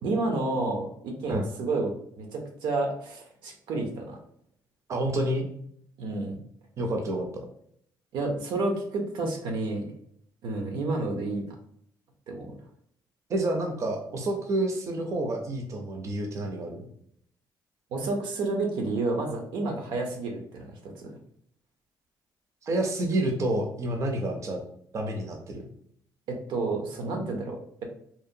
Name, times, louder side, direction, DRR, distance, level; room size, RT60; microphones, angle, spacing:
voice 1, 0.0-4.2 6.0-6.4 8.1-9.9 10.4-11.5 12.3-12.6 17.9-21.1 26.3-27.9, right 2 dB, 85° right, 3 dB, 0.6 m, -30 dB
voice 2, 4.9-5.5 6.8-7.4 13.3-16.9 22.6-24.6 24.9-25.7, right 1 dB, 40° right, 2 dB, 0.4 m, -29 dB
2.7 x 2.0 x 2.6 m, 0.67 s
cardioid pair, 130°, 8 cm